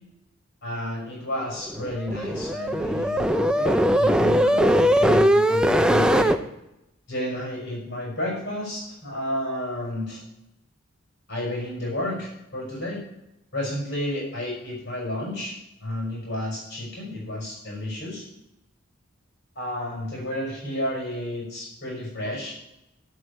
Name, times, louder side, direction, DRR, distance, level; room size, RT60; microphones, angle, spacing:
voice 1, 0.6-6.3 7.1-10.2 11.3-13.0 13.5-15.5 15.8-18.2 19.6-22.5, left 1 dB, 55° left, -3 dB, 5.6 m, -31 dB
sound 1, 1.7-6.4, equal, 5° right, 0.4 m, -20 dB
10.5 x 8.0 x 6.9 m, 0.88 s
head